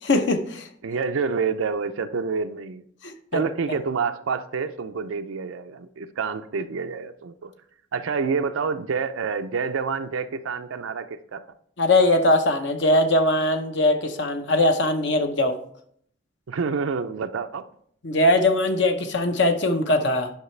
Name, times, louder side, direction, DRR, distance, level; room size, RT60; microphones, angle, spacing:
voice 1, 0.0-0.7 3.0-3.4 11.8-15.6 18.0-20.3, left 1 dB, 65° left, 7 dB, 0.8 m, -21 dB
voice 2, 0.8-2.8 3.3-7.5 7.9-11.5 16.5-17.7, right 5 dB, 90° right, 8 dB, 0.5 m, -28 dB
10.5 x 5.7 x 3.2 m, 0.66 s
head